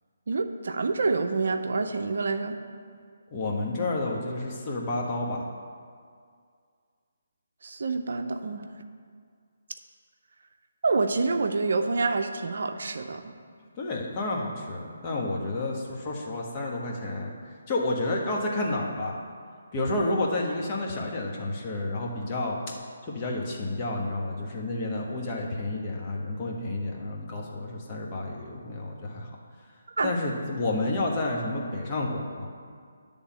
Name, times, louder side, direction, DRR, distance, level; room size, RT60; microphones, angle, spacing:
voice 1, 0.3-2.6 7.6-8.7 10.8-13.3 30.0-30.1, right 3 dB, 65° right, 7 dB, 0.5 m, -27 dB
voice 2, 3.3-5.4 13.7-17.3 17.7-19.2 19.7-22.6 23.1-29.3 30.0-32.5, left 2 dB, 30° left, -2 dB, 1.3 m, -30 dB
10.0 x 3.6 x 7.2 m, 2.1 s
figure-of-eight pair, 150°, 0 cm